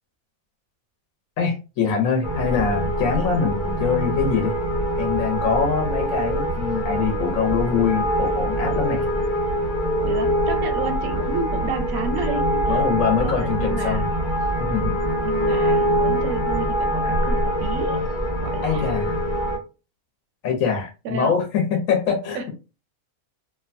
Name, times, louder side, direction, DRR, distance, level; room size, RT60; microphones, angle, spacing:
voice 1, 1.4-4.5 5.0-9.0 12.7-14.0 14.6-15.0 18.6-19.2 20.4-22.5, left 6 dB, 70° left, 1 dB, 1.1 m, -23 dB
sound 1, 2.2-19.6, equal, 25° left, 0.8 m, -24 dB
voice 2, 10.0-12.8 13.2-14.1 15.2-18.0 18.4-19.0 21.0-21.4 22.3-22.5, right 5 dB, 80° right, 6 dB, 1.1 m, -31 dB
2.9 x 2.2 x 2.5 m, 0.31 s
omnidirectional pair, 1.5 m